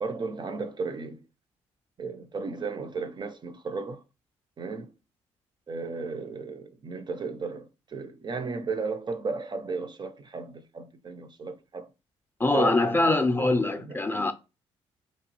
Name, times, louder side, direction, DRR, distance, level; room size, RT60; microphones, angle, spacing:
voice 1, 0.0-1.2 2.0-4.0 4.6-4.9 5.7-11.9 12.4-13.1 13.4-14.0, right 4 dB, 40° right, 0.5 m, -34 dB
voice 2, 12.4-14.3, left 2 dB, 15° left, 0.5 m, -23 dB
2.9 x 2.3 x 2.9 m
supercardioid pair, 60°, 12 cm